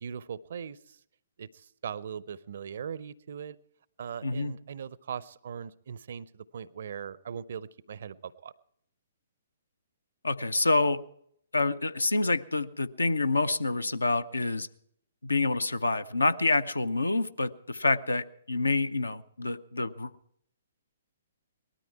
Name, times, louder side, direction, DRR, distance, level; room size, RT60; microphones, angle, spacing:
voice 1, 0.0-1.0 1.4-3.6 4.0-8.5, right 7 dB, 55° right, 20 dB, 0.5 m, -40 dB
voice 2, 4.2-4.5 10.2-11.0 11.5-14.7 15.2-20.1, left 3 dB, 75° left, 14 dB, 0.6 m, -27 dB
19.0 x 13.0 x 4.6 m, 0.71 s
figure-of-eight pair, 125°, 0 cm